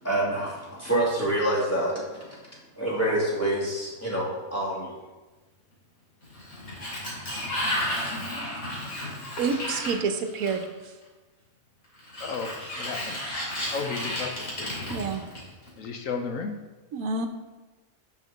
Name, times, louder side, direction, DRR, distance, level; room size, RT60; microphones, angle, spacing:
voice 1, 0.0-2.4 2.8-4.9, right 1 dB, 10° left, -6 dB, 2.5 m, -27 dB
Sliding door, 6.2-10.8 12.0-15.7, left 1 dB, 90° left, 3.1 m, -33 dB
voice 2, 9.4-10.6 14.9-15.2 16.9-17.3, right 4 dB, 80° right, 7 dB, 1.2 m, -28 dB
voice 3, 12.2-12.5 12.8-13.2 13.7-14.9 15.8-16.6, left 5 dB, 70° left, 4 dB, 1.1 m, -33 dB
6.6 x 5.9 x 6.4 m, 1.2 s
omnidirectional pair, 1.5 m